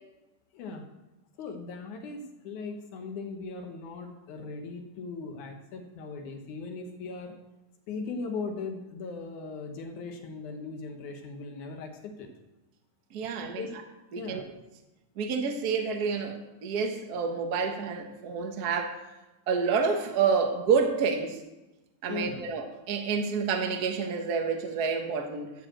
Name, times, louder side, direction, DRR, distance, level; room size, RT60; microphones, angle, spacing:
voice 1, 0.5-0.8 1.4-7.4 7.9-12.3 13.2-13.3 13.6-13.7 14.2-14.4 22.1-22.4, left 4 dB, 70° left, 4 dB, 2.7 m, -38 dB
voice 2, 13.1-13.6 14.3-14.4 15.2-19.0 19.5-21.4 22.0-25.5, right 5 dB, 85° right, 4 dB, 0.8 m, -28 dB
13.5 x 5.0 x 7.7 m, 1.0 s
omnidirectional pair, 3.8 m